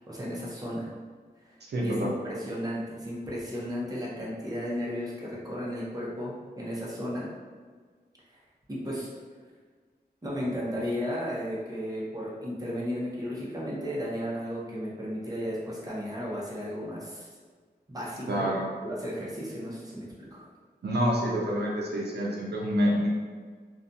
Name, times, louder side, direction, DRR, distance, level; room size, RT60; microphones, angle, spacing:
voice 1, 0.1-0.9 1.4-1.6 1.8-7.3 8.7-9.1 10.2-17.3 17.9-18.5 18.8-20.4, equal, 20° right, -5 dB, 0.7 m, -34 dB
voice 2, 1.7-2.1 18.3-18.7 20.8-23.1, equal, 80° right, -3 dB, 0.5 m, -27 dB
2.4 x 2.2 x 2.6 m, 1.6 s
wide cardioid pair, 75°, 17 cm